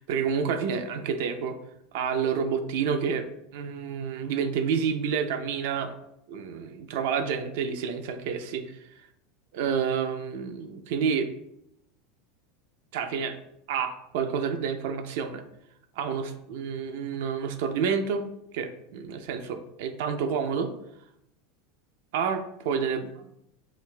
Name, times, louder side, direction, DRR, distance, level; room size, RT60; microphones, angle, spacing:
voice 1, 0.0-1.6 1.9-3.3 3.5-5.9 6.3-8.8 9.5-11.3 12.9-13.4 13.7-15.4 16.0-18.2 18.5-20.7 22.1-23.1, right 6 dB, 70° right, 8 dB, 0.4 m, -29 dB
5.7 x 2.4 x 2.2 m, 0.78 s
supercardioid pair, 140°, 0 cm